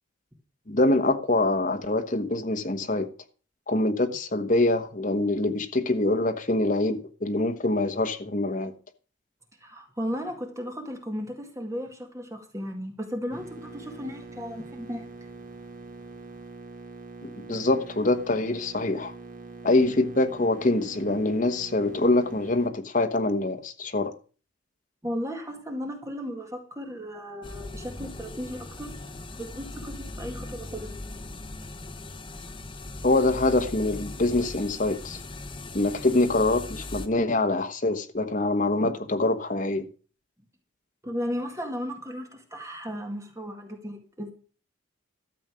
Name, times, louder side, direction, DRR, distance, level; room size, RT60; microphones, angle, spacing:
voice 1, 0.7-3.1 3.7-8.7 17.2-19.1 19.6-24.1 33.0-35.2 35.7-39.9, left 2 dB, 40° left, 1.3 m, -24 dB
voice 2, 9.6-15.1 25.0-28.9 29.4-31.0 41.0-44.3, equal, 15° right, 2.0 m, -35 dB
sound 1, 13.3-22.7, right 3 dB, 40° right, 1.7 m, -44 dB
sound 2, 27.4-37.1, left 2 dB, 25° left, 1.0 m, -39 dB
13.0 x 7.3 x 6.2 m
head